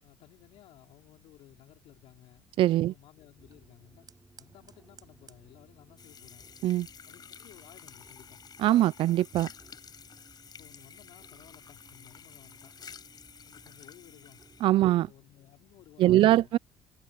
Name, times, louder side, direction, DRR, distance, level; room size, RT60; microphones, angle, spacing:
voice 1, 0.0-2.5 2.8-4.1 4.4-6.5 7.0-8.4 10.5-12.8 13.5-14.5 14.9-16.6, left 15 dB, 80° left, 5.1 m, -57 dB
Fire, 1.1-8.4, right 6 dB, 40° right, 5.7 m, -64 dB
voice 2, 2.6-2.9 6.6-6.9 8.6-9.5 14.6-15.1 16.0-16.6, right 14 dB, 65° right, 0.4 m, -22 dB
sound 1, 3.4-14.8, right 3 dB, 20° right, 7.1 m, -60 dB
water run into cupped hands from bathroom tap, 6.0-14.7, left 7 dB, 45° left, 5.0 m, -51 dB
cardioid pair, 90°, 10 cm